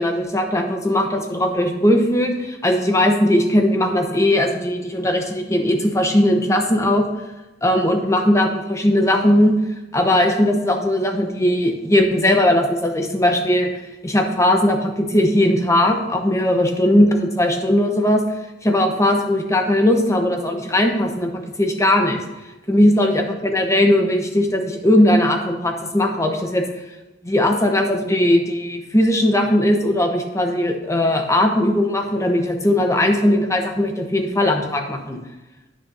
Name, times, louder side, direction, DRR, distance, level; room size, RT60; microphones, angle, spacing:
voice 1, 0.0-7.1 7.6-9.5 9.9-13.7 14.0-18.2 18.6-21.3 21.6-22.2 22.7-26.6 27.2-35.2, left 1 dB, 15° left, 3 dB, 1.1 m, -18 dB
16.5 x 6.4 x 2.8 m, 1.0 s
head